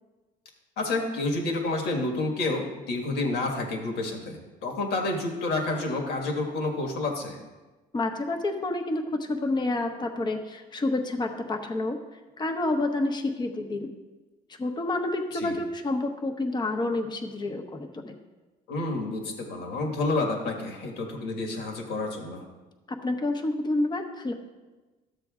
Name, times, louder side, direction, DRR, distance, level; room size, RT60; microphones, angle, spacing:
voice 1, 0.8-7.4 15.3-15.6 18.7-22.4, left 2 dB, 75° left, 1 dB, 1.7 m, -29 dB
voice 2, 7.9-12.0 12.4-13.9 14.6-18.2 22.9-24.3, left 2 dB, 25° left, 4 dB, 0.9 m, -29 dB
13.0 x 7.5 x 2.4 m, 1.2 s
cardioid pair, 110°, 17 cm